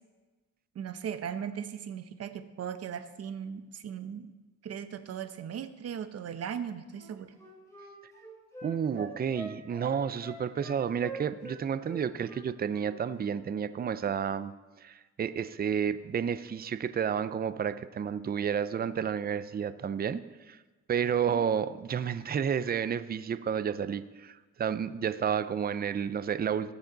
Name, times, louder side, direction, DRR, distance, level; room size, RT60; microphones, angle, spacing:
voice 1, 0.7-4.3 4.6-7.3 21.3-21.5, right 8 dB, 55° right, 10 dB, 0.9 m, -38 dB
Wind instrument woodwind instrument, 6.9-11.6 11.9-12.9 13.2-13.4, right 2 dB, 10° left, 3.6 m, -45 dB
voice 2, 8.6-14.5 14.8-20.2 20.5-20.6 20.9-26.7, right 7 dB, 30° right, 13 dB, 0.5 m, -31 dB
18.5 x 7.2 x 4.0 m, 1.2 s
cardioid pair, 90°, 30 cm